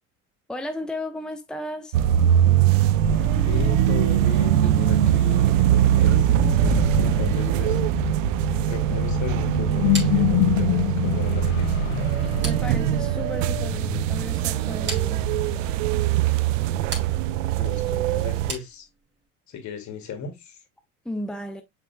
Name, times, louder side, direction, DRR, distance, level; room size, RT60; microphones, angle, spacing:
voice 1, 0.5-2.0 12.2-15.2 21.0-21.6, left 1 dB, ahead, 1.0 m, -34 dB
sound 1, 1.9-18.5, right 12 dB, 80° right, 0.6 m, -22 dB
sound 2, 2.8-16.2, left 16 dB, 65° left, 0.6 m, -29 dB
voice 2, 3.5-8.1 8.6-11.8 17.6-18.9 19.5-20.6, left 5 dB, 50° left, 2.3 m, -36 dB
sound 3, 9.9-19.3, right 2 dB, 30° right, 3.6 m, -40 dB
7.1 x 5.9 x 2.3 m
hypercardioid pair, 70°, 38 cm